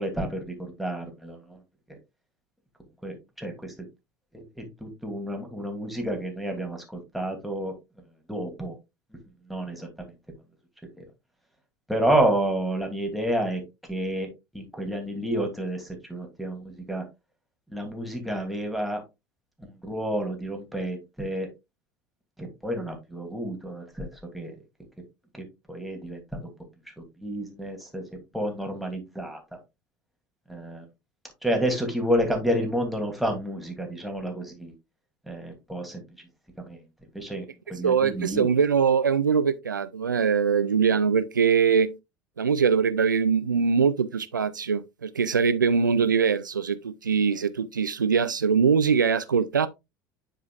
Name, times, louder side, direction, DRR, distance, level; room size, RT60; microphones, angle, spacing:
voice 1, 0.0-1.6 1.9-2.0 3.0-3.7 4.3-7.7 8.3-8.7 9.5-9.9 11.0-11.1 11.9-14.3 14.5-17.0 17.7-19.0 19.6-21.5 22.4-24.6 25.7-26.4 27.2-28.0 28.3-29.4 30.5-30.8 31.4-34.7 35.3-36.0 36.6-36.8 37.1-38.5, right 1 dB, ahead, 2.8 m, -30 dB
voice 2, 37.8-41.9 42.4-49.7, right 6 dB, 85° right, 0.4 m, -22 dB
9.7 x 4.9 x 2.4 m
figure-of-eight pair, 70°, 10 cm